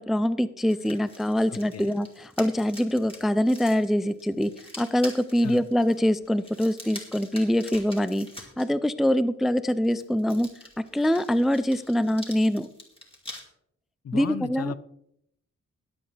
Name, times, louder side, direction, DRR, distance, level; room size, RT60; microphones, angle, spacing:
voice 1, 0.0-8.3 8.6-10.5 10.8-12.7 14.1-14.7, equal, ahead, 14 dB, 0.4 m, -24 dB
sound 1, 0.6-8.6 9.7-13.4, left 1 dB, 20° left, 2.6 m, -45 dB
voice 2, 1.5-1.9 5.4-5.6 14.0-14.8, left 7 dB, 55° left, 15 dB, 0.6 m, -35 dB
21.0 x 7.9 x 3.3 m, 0.73 s
wide cardioid pair, 130°, 30 cm